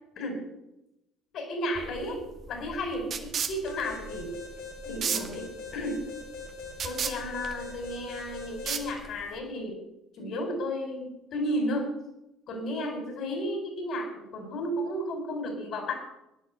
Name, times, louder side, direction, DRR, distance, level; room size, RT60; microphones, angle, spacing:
voice 1, 1.3-4.3 4.8-6.0 6.8-9.8 10.1-11.9 12.5-15.9, equal, 55° left, 5 dB, 4.8 m, -33 dB
sound 1, 1.8-9.4, right 6 dB, 45° right, 1.9 m, -36 dB
Alarm, 3.6-8.9, left 5 dB, 85° left, 4.7 m, -42 dB
16.5 x 10.5 x 6.7 m, 0.89 s
hypercardioid pair, 55°, 0 cm